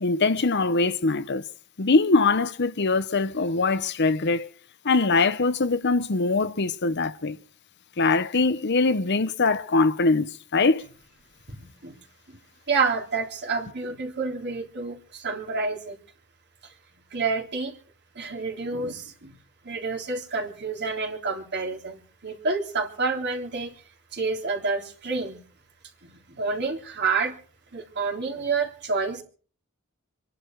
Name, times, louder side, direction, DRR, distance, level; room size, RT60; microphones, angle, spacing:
voice 1, 0.0-1.4 1.8-4.5 4.8-7.4 8.0-10.8, left 3 dB, 55° left, 0.9 m, -22 dB
voice 2, 11.5-12.0 12.3-12.4 12.7-16.0 16.6-16.7 17.1-17.8 18.2-19.4 19.6-23.7 24.1-25.4 26.1-27.4 27.7-29.2, right 4 dB, 50° right, 3.5 m, -29 dB
27.0 x 11.5 x 4.6 m
head